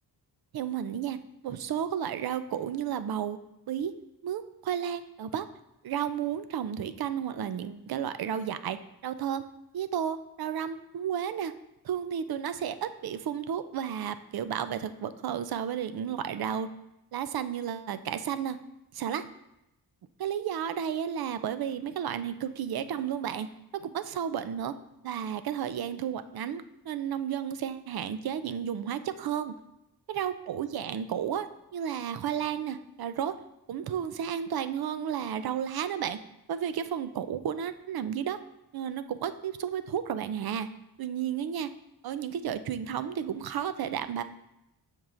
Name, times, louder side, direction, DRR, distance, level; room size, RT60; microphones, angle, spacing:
voice 1, 0.5-1.2 1.4-3.4 3.7-3.9 4.2-5.5 5.8-9.4 9.7-11.5 11.8-16.7 17.1-18.6 18.9-19.3 20.2-23.5 23.7-24.7 25.0-29.5 30.1-33.3 33.7-36.2 36.5-38.4 38.7-40.7 41.0-41.7 42.0-44.2, right 9 dB, 65° right, 12 dB, 0.5 m, -32 dB
12.5 x 4.6 x 2.5 m, 0.88 s
wide cardioid pair, 145°, 41 cm